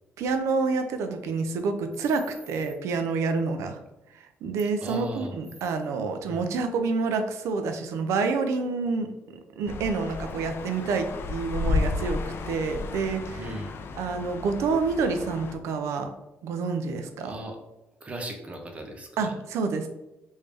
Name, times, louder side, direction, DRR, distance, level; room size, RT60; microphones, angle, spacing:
voice 1, 0.2-3.8 4.1-12.2 12.5-13.5 14.0-16.1 16.4-17.4 19.2-19.9, right 4 dB, 85° right, 7 dB, 0.4 m, -28 dB
voice 2, 4.8-5.3 6.2-6.5 13.4-13.8 17.2-17.6 18.0-19.4, right 1 dB, 25° right, 3 dB, 0.6 m, -37 dB
sound 1, 9.7-15.5, left 3 dB, 55° left, 0.4 m, -32 dB
3.4 x 2.6 x 3.4 m, 0.96 s
cardioid pair, 110°, 5 cm